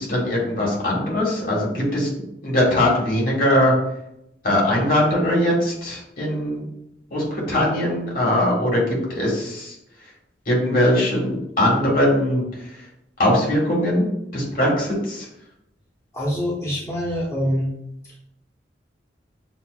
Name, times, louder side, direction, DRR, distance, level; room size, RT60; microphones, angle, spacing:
voice 1, 0.0-2.1 2.4-3.7 4.4-6.6 7.1-9.8 10.5-12.4 13.2-14.1 14.3-15.3, left 1 dB, 55° left, -4 dB, 1.7 m, -21 dB
voice 2, 16.1-17.7 18.0-18.2, equal, 15° left, -7 dB, 1.1 m, -25 dB
7.2 x 2.8 x 2.5 m, 0.81 s
head